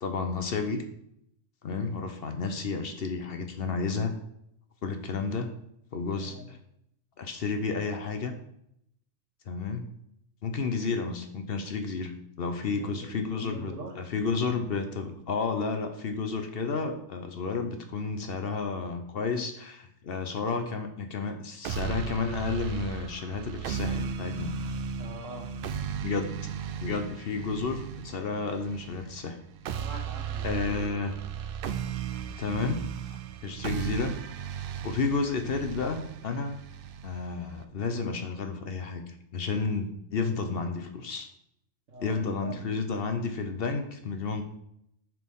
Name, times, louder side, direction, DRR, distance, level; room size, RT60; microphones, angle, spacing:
voice 1, 0.0-0.8 1.6-4.1 4.8-5.5 5.9-6.6 7.2-8.3 9.5-9.9 10.4-24.5 26.0-26.4 26.8-29.4 30.4-31.1 32.4-34.2 34.8-36.6 37.0-41.3 42.0-44.4, left 4 dB, 55° left, 6 dB, 0.9 m, -31 dB
voice 2, 6.2-6.5 12.6-14.0 25.0-25.5 29.7-31.0 41.9-42.7, right 1 dB, 80° right, 2 dB, 1.8 m, -43 dB
sound 1, 21.6-37.6, right 7 dB, 60° right, 0.6 m, -36 dB
10.0 x 4.6 x 3.6 m, 0.75 s
omnidirectional pair, 1.3 m